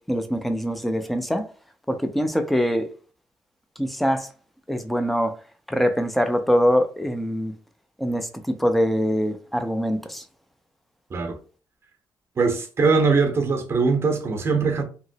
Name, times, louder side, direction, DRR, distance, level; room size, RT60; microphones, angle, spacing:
voice 1, 0.1-1.4 1.9-2.9 3.8-4.3 4.7-5.4 5.7-7.5 8.0-10.2, equal, ahead, 0.3 m, -23 dB
voice 2, 12.4-14.8, right 4 dB, 30° right, 0.7 m, -21 dB
2.8 x 2.8 x 2.7 m
wide cardioid pair, 170°, 8 cm